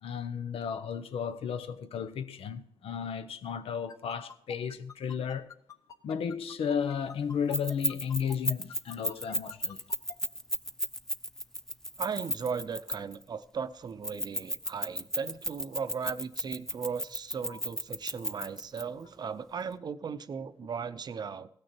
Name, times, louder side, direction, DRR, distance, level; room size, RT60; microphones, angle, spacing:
voice 1, 0.0-5.5 6.0-9.8 17.5-17.6, left 7 dB, 80° left, 0.8 m, -34 dB
sound 1, 3.9-10.1, left 5 dB, 35° left, 0.8 m, -46 dB
Keys jangling, 7.5-13.2 14.0-18.8, equal, 5° left, 0.5 m, -33 dB
voice 2, 12.0-21.5, right 6 dB, 45° right, 0.6 m, -37 dB
17.0 x 6.4 x 4.4 m
cardioid pair, 115°, 10 cm